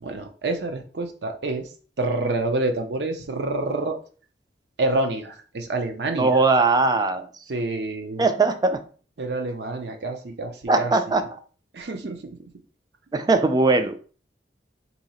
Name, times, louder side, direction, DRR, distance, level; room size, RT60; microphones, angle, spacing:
voice 1, 0.0-1.7 2.0-4.0 4.8-6.3 7.5-8.2 9.2-10.9 11.7-12.2, right 2 dB, 75° right, 5 dB, 0.6 m, -27 dB
voice 2, 6.2-7.3 8.2-8.8 10.7-11.4 13.1-14.0, right 3 dB, 20° right, 9 dB, 0.3 m, -20 dB
2.8 x 2.8 x 4.2 m, 0.41 s
head